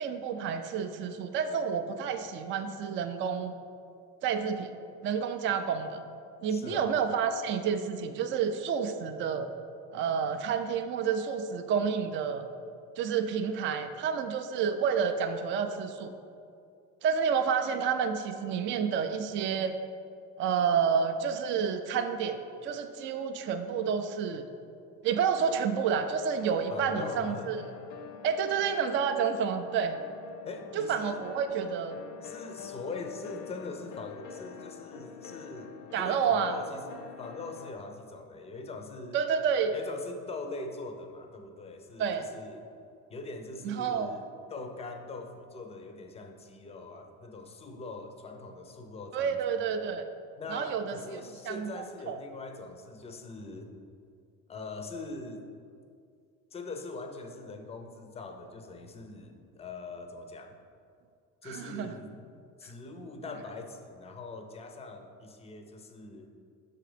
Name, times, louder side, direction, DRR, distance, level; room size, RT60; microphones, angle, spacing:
voice 1, 0.0-3.5 4.2-4.7 5.0-6.0 6.4-9.5 9.9-12.5 13.0-16.1 17.0-19.8 20.4-24.4 25.0-27.6 28.2-30.0 30.7-32.0 35.9-36.6 39.1-39.7 42.0-42.3 43.6-44.1 49.1-50.1 50.5-52.2 61.4-61.9, right 6 dB, 35° right, 7 dB, 0.4 m, -29 dB
voice 2, 6.5-6.9 26.7-27.5 30.4-31.2 32.2-39.2 39.7-42.7 43.1-44.2 44.5-49.6 50.4-53.7 54.5-55.5 56.5-60.6 61.4-62.2 62.6-66.3, left 3 dB, 20° left, 5 dB, 0.5 m, -42 dB
sound 1, 26.4-37.7, left 7 dB, 65° left, 0.6 m, -46 dB
6.8 x 3.8 x 5.0 m, 2.3 s
cardioid pair, 135°, 34 cm